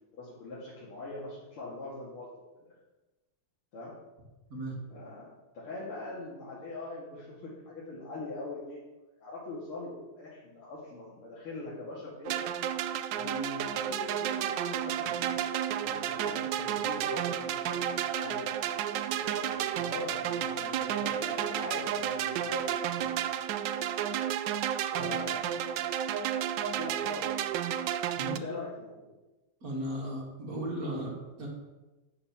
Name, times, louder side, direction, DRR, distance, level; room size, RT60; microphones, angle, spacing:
voice 1, 0.1-2.3 2.6-2.7 3.7-3.9 4.9-5.3 5.5-8.8 9.2-12.3 13.1-15.4 15.7-17.9 18.1-18.5 19.2-23.1 24.9-25.7 26.6-27.6 28.3-29.1, left 2 dB, 85° left, -7 dB, 2.9 m, -42 dB
sound 1, 12.2-28.4, right 10 dB, 75° right, 1.1 m, -32 dB
voice 2, 28.2-28.7 29.6-31.5, right 1 dB, 45° right, -2 dB, 2.5 m, -36 dB
8.4 x 6.9 x 5.9 m, 1.1 s
omnidirectional pair, 2.3 m